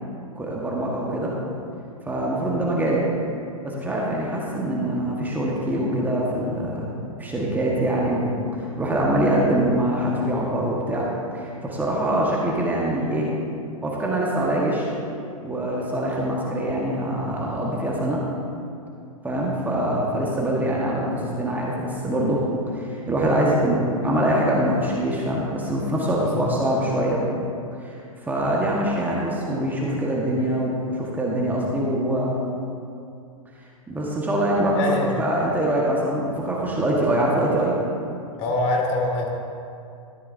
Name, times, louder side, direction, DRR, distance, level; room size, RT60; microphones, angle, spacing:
voice 1, 0.3-1.3 2.0-3.0 3.6-6.9 7.2-8.3 8.6-11.1 11.3-13.3 13.8-14.9 15.4-18.2 19.2-22.4 22.7-27.2 27.8-32.4 33.9-37.7, right 1 dB, 10° right, -4 dB, 1.4 m, -24 dB
voice 2, 34.7-35.1 38.4-39.3, left 2 dB, 40° left, 0 dB, 2.1 m, -24 dB
13.5 x 10.5 x 2.7 m, 2.5 s
hypercardioid pair, 120°, 18 cm